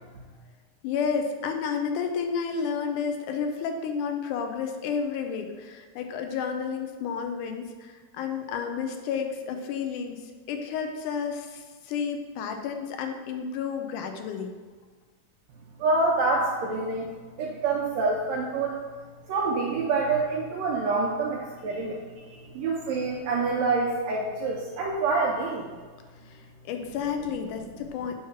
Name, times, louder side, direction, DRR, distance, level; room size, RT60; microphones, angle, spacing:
voice 1, 0.8-10.2 10.5-14.5 26.3-26.4 26.7-28.1, left 6 dB, 85° left, 5 dB, 2.2 m, -31 dB
voice 2, 15.8-17.1 17.4-18.8 19.3-25.7, right 3 dB, 75° right, -2 dB, 1.8 m, -27 dB
9.4 x 3.2 x 5.8 m, 1.4 s
omnidirectional pair, 3.6 m